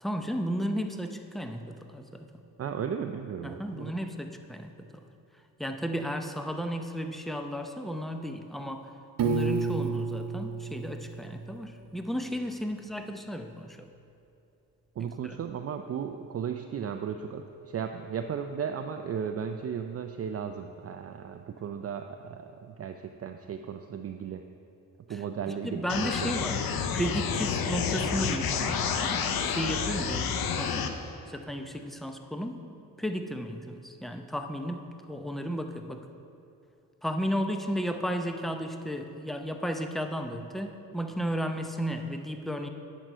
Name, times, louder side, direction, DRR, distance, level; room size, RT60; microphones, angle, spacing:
voice 1, 0.0-2.3 3.4-5.0 5.6-8.9 9.2-13.9 15.0-15.4 25.4-32.6 33.0-36.1 37.0-42.7, equal, ahead, 6 dB, 0.6 m, -34 dB
voice 2, 2.6-4.0 15.0-24.4 25.1-26.5, right 7 dB, 45° right, 5 dB, 0.5 m, -35 dB
Piano, 9.2-12.1, right 4 dB, 70° right, 0.9 m, -31 dB
sound 1, 25.9-30.9, left 6 dB, 80° left, 0.7 m, -29 dB
8.9 x 6.3 x 5.5 m, 2.7 s
cardioid pair, 80°, 35 cm